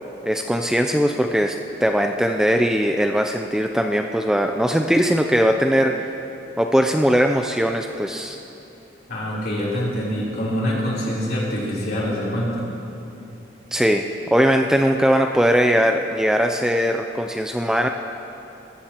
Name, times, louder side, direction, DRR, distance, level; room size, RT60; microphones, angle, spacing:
voice 1, 0.2-1.6 1.8-6.1 6.6-8.4 13.7-17.9, equal, 5° right, 4 dB, 0.3 m, -20 dB
voice 2, 9.1-12.7, equal, 55° left, -6 dB, 3.4 m, -25 dB
20.5 x 14.0 x 2.9 m, 2.9 s
head